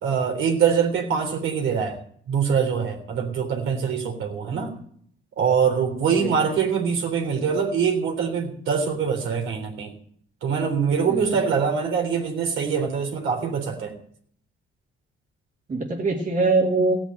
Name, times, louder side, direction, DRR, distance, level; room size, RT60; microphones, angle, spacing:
voice 1, 0.0-2.0 2.3-4.7 5.4-9.9 10.4-13.9, right 6 dB, 80° right, 3 dB, 3.6 m, -24 dB
voice 2, 11.1-11.4 15.7-17.0, right 3 dB, 40° right, 1 dB, 2.5 m, -23 dB
16.5 x 6.0 x 9.0 m, 0.63 s
cardioid pair, 90°, 20 cm